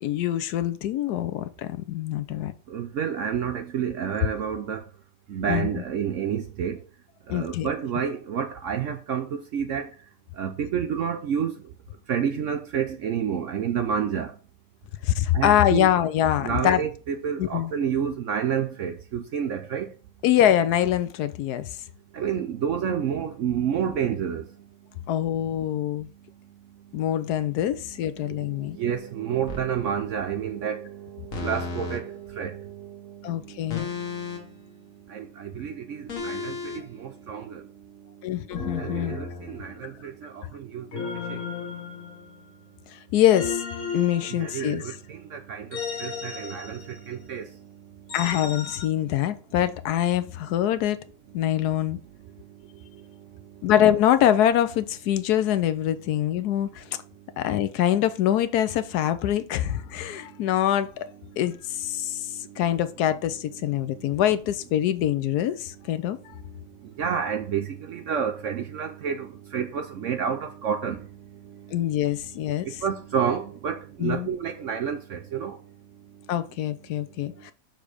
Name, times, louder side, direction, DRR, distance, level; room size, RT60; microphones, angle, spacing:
voice 1, 0.0-2.5 5.5-5.7 7.3-7.7 15.0-16.8 17.4-17.7 20.2-21.7 25.1-26.1 26.9-28.8 33.2-33.9 38.2-39.2 42.9-43.6 43.9-45.0 48.1-51.0 51.3-52.0 53.6-56.8 57.4-60.9 61.4-66.2 71.7-72.8 74.0-74.3 76.3-77.5, left 11 dB, 75° left, 1.1 m, -24 dB
voice 2, 2.7-4.8 5.3-6.8 7.3-9.9 10.4-11.5 12.1-14.3 15.3-15.9 16.4-19.9 22.1-24.5 28.2-34.0 35.1-37.6 38.8-41.0 41.3-41.4 44.3-45.7 46.0-47.5 67.0-71.0 71.8-71.9 72.8-75.6, right 8 dB, 70° right, 0.7 m, -29 dB
sound 1, 29.5-29.7 31.3-32.0 33.7-34.6 36.1-36.8 38.5-40.0 40.9-42.5 43.3-44.9 45.7-47.2 48.1-48.9, left 5 dB, 55° left, 1.5 m, -34 dB
6.5 x 3.4 x 4.9 m
omnidirectional pair, 1.8 m